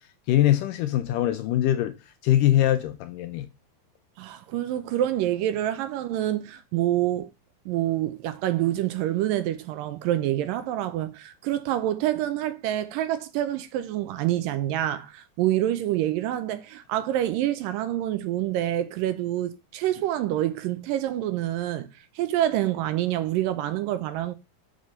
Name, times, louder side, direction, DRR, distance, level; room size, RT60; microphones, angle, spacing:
voice 1, 0.3-1.9 2.2-3.5, left 13 dB, 85° left, 2.0 m, -22 dB
voice 2, 4.2-7.3 7.7-21.9 22.2-24.4, right 13 dB, 80° right, 2.2 m, -27 dB
6.2 x 6.0 x 5.3 m
omnidirectional pair, 4.2 m